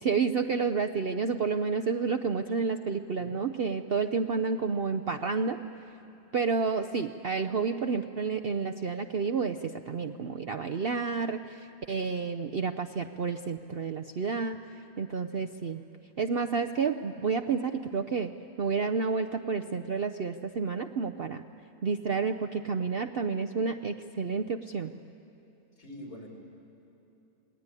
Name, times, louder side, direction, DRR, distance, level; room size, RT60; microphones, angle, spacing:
voice 1, 0.0-5.6 6.3-14.6 15.0-15.8 16.2-18.3 18.6-21.4 21.8-24.9, right 5 dB, 55° right, 5 dB, 0.7 m, -30 dB
voice 2, 3.1-3.5 25.8-26.3, equal, 70° left, 0 dB, 5.4 m, -45 dB
27.5 x 19.5 x 9.7 m, 2.9 s
omnidirectional pair, 1.7 m